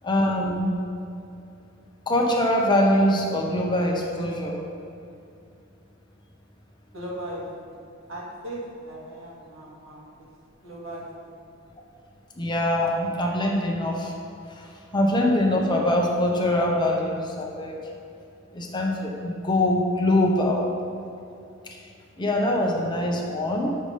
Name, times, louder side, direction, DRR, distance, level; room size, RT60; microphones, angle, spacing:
voice 1, 0.0-0.7 2.1-4.6 12.4-14.1 14.5-17.8 18.5-20.7 22.2-23.8, left 1 dB, 20° left, 0 dB, 0.8 m, -23 dB
voice 2, 6.9-7.8 8.1-10.3 10.6-11.3, right 1 dB, 65° right, -5 dB, 1.9 m, -38 dB
7.2 x 6.4 x 5.0 m, 2.6 s
head